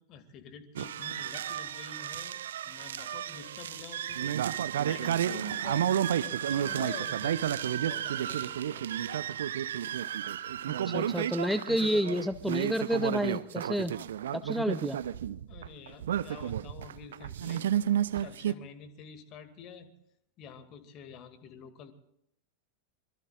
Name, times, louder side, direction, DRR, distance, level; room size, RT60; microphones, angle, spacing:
voice 1, 0.0-4.4 4.8-8.8 15.5-17.7 18.2-19.9 20.4-21.9, left 7 dB, 35° left, 9 dB, 2.2 m, -48 dB
sound 1, 0.8-18.5, right 10 dB, 60° right, 0.6 m, -32 dB
voice 2, 10.9-14.0 14.3-15.0, equal, ahead, 13 dB, 0.7 m, -30 dB
25.0 x 23.0 x 2.5 m, 0.78 s
figure-of-eight pair, 90°, 0 cm